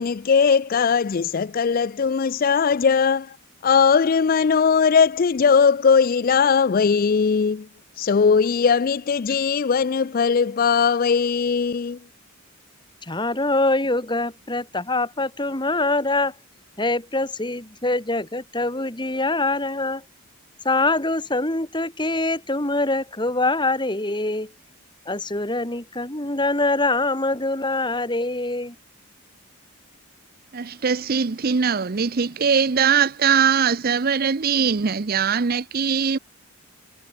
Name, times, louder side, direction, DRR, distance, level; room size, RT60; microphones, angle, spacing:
voice 1, 0.0-3.4 3.6-7.7 8.0-12.0, left 6 dB, 40° left, 0.4 m, -19 dB
voice 2, 13.0-16.4 16.8-20.0 20.6-24.5 25.1-28.8, left 2 dB, 20° left, 2.4 m, -24 dB
voice 3, 30.5-36.2, right 6 dB, 45° right, 0.6 m, -21 dB
head